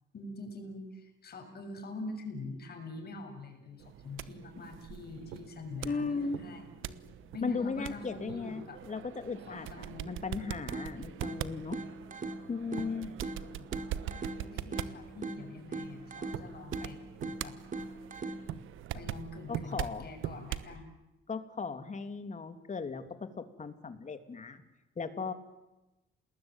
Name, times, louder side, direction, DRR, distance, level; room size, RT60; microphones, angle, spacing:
voice 1, 0.1-8.8 9.5-10.2 12.9-13.7 14.4-17.0 17.4-17.6 18.9-21.0, left 2 dB, 50° left, 5 dB, 7.1 m, -45 dB
sound 1, 3.8-20.8, right 11 dB, 85° right, 1.2 m, -43 dB
voice 2, 5.8-6.4 7.4-11.8 12.5-13.1 19.5-20.1 21.3-24.6 25.0-25.3, left 4 dB, 35° left, 9 dB, 3.0 m, -37 dB
sound 2, 10.7-18.7, right 3 dB, 40° right, 3.1 m, -41 dB
29.0 x 20.0 x 9.1 m, 1.0 s
cardioid pair, 90°, 20 cm